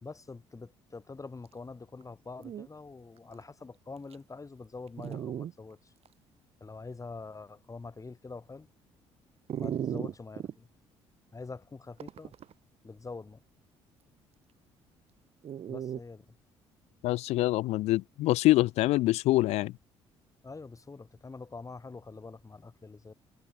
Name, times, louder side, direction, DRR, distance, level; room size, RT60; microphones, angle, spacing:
voice 1, 0.0-5.9 6.6-8.7 9.6-10.7 11.3-12.3 12.8-13.4 15.7-16.3 20.4-23.1, left 3 dB, 25° left, 3.9 m, -45 dB
Dog, 2.0-2.1 2.4-2.7 3.3-3.4 4.1-4.2 5.0-5.5 6.1-6.2 9.5-10.5 12.0-12.5 15.4-16.0, right 9 dB, 45° right, 3.3 m, -35 dB
voice 2, 17.0-19.7, left 17 dB, 50° left, 0.4 m, -25 dB
figure-of-eight pair, 45°, 14 cm